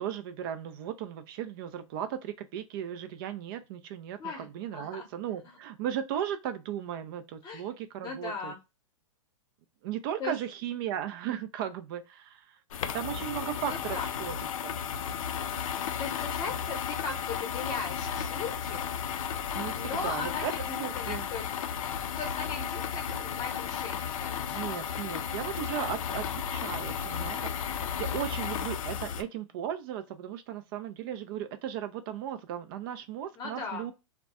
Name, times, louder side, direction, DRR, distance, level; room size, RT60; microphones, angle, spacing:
voice 1, 0.0-8.5 9.8-12.5 12.9-14.8 19.5-20.5 20.8-21.3 24.5-33.9, right 10 dB, 40° right, 0.4 m, -36 dB
voice 2, 4.7-5.1 7.4-7.6 8.0-8.6 10.2-10.3 13.6-14.1 16.0-19.0 19.7-21.5 22.2-24.8 33.4-33.9, left 4 dB, 25° left, 0.8 m, -38 dB
sound 1, 12.7-29.2, left 8 dB, 75° left, 0.4 m, -34 dB
2.2 x 2.1 x 2.7 m
hypercardioid pair, 140°, 18 cm